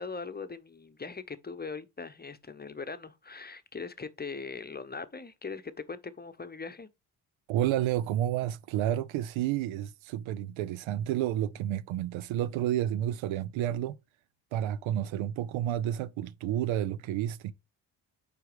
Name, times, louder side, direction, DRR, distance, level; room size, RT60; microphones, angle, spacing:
voice 1, 0.0-6.9, left 4 dB, 20° left, 0.9 m, -40 dB
voice 2, 7.5-13.9 14.5-17.5, right 12 dB, 75° right, 0.7 m, -30 dB
5.0 x 4.6 x 4.9 m
supercardioid pair, 50°, 47 cm